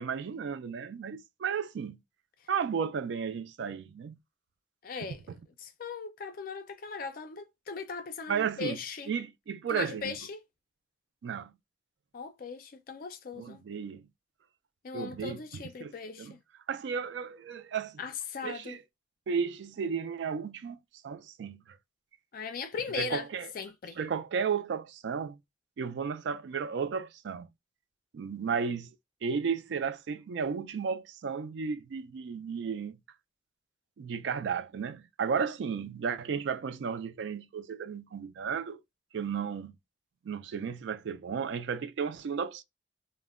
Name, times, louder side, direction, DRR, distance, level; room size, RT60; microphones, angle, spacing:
voice 1, 0.0-2.0 2.5-4.1 8.3-8.8 9.1-10.2 11.2-11.5 13.4-14.0 14.9-15.9 16.2-16.3 16.7-18.0 18.4-18.8 19.3-20.8 21.0-21.6 23.0-23.5 24.0-25.4 25.8-27.5 28.1-28.9 29.2-33.0 34.0-38.8 39.1-39.7 40.2-42.6, right 6 dB, 70° right, 0.3 m, -33 dB
voice 2, 4.8-5.2 5.6-9.1 9.7-10.4 12.1-13.6 14.8-16.4 18.0-18.8 22.3-23.3 23.5-24.0, left 5 dB, 50° left, 0.4 m, -38 dB
2.1 x 2.1 x 3.5 m
head